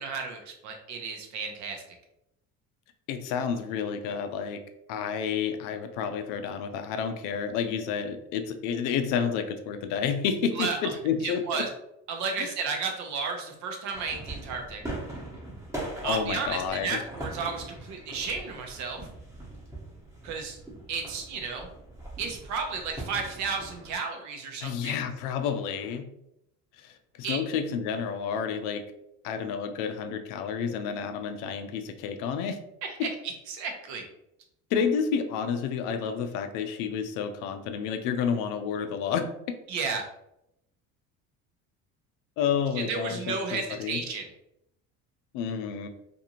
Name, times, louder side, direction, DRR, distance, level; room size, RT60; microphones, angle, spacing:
voice 1, 0.0-1.8 10.5-10.8 11.2-11.7 12.1-14.8 16.0-19.0 20.2-20.6 20.9-21.7 22.2-25.0 27.2-27.4 32.8-33.1 33.5-34.0 39.7-40.0 42.8-44.2, right 5 dB, 65° right, 3 dB, 0.8 m, -33 dB
voice 2, 3.1-4.6 4.9-11.6 12.4-12.5 16.0-17.0 24.6-26.1 26.8-28.8 29.2-32.6 33.0-33.1 34.7-39.3 42.4-44.0 45.3-45.9, left 7 dB, 80° left, 7 dB, 0.5 m, -30 dB
sound 1, 13.9-23.9, right 1 dB, 10° right, 0.9 m, -41 dB
2.6 x 2.5 x 2.9 m, 0.81 s
cardioid pair, 110°, 31 cm